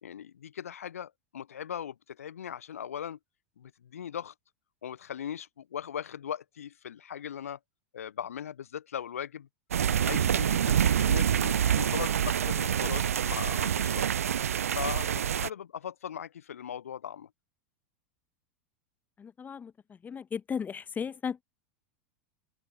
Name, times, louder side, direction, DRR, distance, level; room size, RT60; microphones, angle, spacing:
voice 1, 0.0-3.2 3.6-4.3 4.8-7.6 7.9-9.5 10.1-14.0 14.7-17.3, left 9 dB, 90° left, 1.8 m, -39 dB
sound 1, 9.7-15.5, right 9 dB, 90° right, 1.3 m, -26 dB
voice 2, 19.2-19.7 20.0-21.4, left 7 dB, 25° left, 1.6 m, -35 dB
hypercardioid pair, 105°, 8 cm